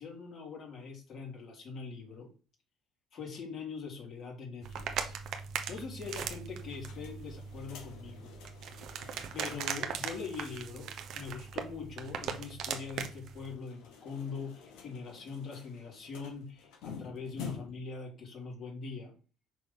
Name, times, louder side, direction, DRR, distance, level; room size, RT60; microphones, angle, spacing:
voice 1, 0.0-2.3 3.1-5.2 5.7-8.3 9.3-19.1, left 5 dB, 50° left, 3.4 m, -42 dB
sound 1, 4.6-13.5, right 7 dB, 55° right, 1.0 m, -39 dB
sound 2, 6.6-9.9 10.2-10.3 10.5-10.6 13.4-17.9, left 6 dB, 70° left, 1.7 m, -49 dB
5.5 x 4.2 x 5.7 m
hypercardioid pair, 60°, 0 cm